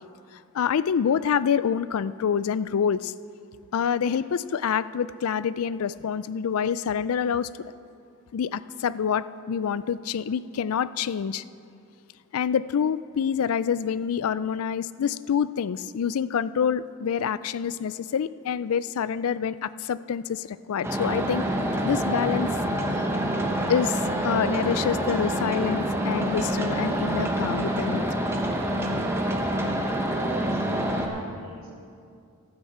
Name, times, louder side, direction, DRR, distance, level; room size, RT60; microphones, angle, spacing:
voice 1, 0.5-3.1 3.7-7.5 8.3-11.4 12.3-21.4 21.8-22.5 22.9-23.0 23.7-28.0, left 7 dB, 80° left, 16 dB, 0.4 m, -26 dB
sound 1, 20.8-31.1, right 1 dB, 10° right, 1.0 m, -26 dB
voice 2, 30.2-31.7, right 1 dB, 75° right, -2 dB, 2.6 m, -41 dB
14.5 x 12.5 x 4.4 m, 2.4 s
head